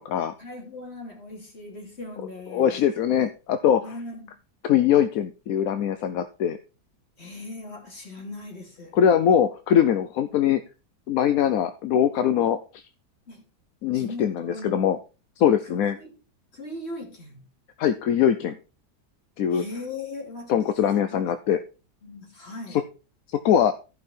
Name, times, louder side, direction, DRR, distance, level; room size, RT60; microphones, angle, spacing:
voice 1, 0.4-2.8 3.8-4.4 7.2-9.0 13.3-13.4 13.9-14.9 15.6-16.1 16.5-17.5 19.5-21.2 22.0-22.8, left 2 dB, 35° left, 3.0 m, -39 dB
voice 2, 2.5-3.9 4.6-6.6 8.9-10.6 11.1-12.8 13.8-15.0 15.4-16.0 17.8-18.6 19.4-19.6 20.5-21.6 23.3-23.7, left 9 dB, 65° left, 1.0 m, -22 dB
14.5 x 5.5 x 4.4 m
omnidirectional pair, 1.8 m